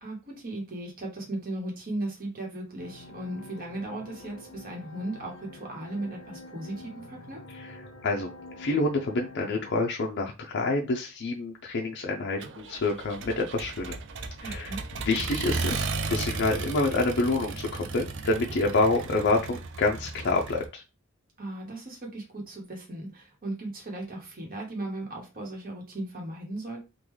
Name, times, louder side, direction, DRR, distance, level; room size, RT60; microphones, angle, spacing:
voice 1, 0.0-7.4 14.4-14.8 21.4-26.8, right 1 dB, 45° right, 0 dB, 1.1 m, -37 dB
sound 1, 2.8-9.7, left 2 dB, 75° left, 1.0 m, -47 dB
voice 2, 8.6-14.0 14.4-14.7 15.0-20.8, left 2 dB, 55° left, 0 dB, 0.5 m, -27 dB
Accelerating revving vroom, 12.4-20.7, right 4 dB, 60° right, 0.5 m, -35 dB
3.7 x 2.3 x 3.1 m, 0.28 s
head